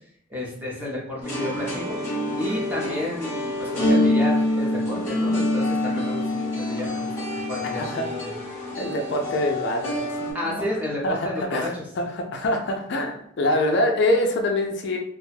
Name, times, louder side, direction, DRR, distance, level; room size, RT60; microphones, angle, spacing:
voice 1, 0.3-2.0 2.3-8.3 10.3-11.8, left 1 dB, 10° right, -4 dB, 0.6 m, -31 dB
sound 1, 1.2-10.3, left 1 dB, 10° left, 1.0 m, -26 dB
voice 2, 8.8-10.7 11.0-15.0, left 1 dB, 55° left, 2 dB, 0.3 m, -25 dB
2.4 x 2.2 x 3.1 m, 0.67 s
head